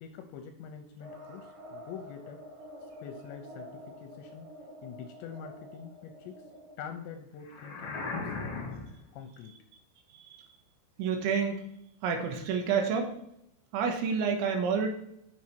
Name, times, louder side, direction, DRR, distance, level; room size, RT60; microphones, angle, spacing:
voice 1, 0.0-2.4 3.0-4.5 4.8-6.4 6.8-8.8 9.1-9.6, left 7 dB, 80° left, 6 dB, 2.7 m, -45 dB
sound 1, 1.0-6.9, equal, 55° right, 2.9 m, -48 dB
sound 2, 7.5-9.1, left 3 dB, 50° left, 1.9 m, -37 dB
voice 2, 11.0-11.6 12.0-13.1 13.7-14.9, right 6 dB, 75° right, 4 dB, 3.4 m, -29 dB
7.3 x 7.0 x 4.5 m, 0.76 s
omnidirectional pair, 5.7 m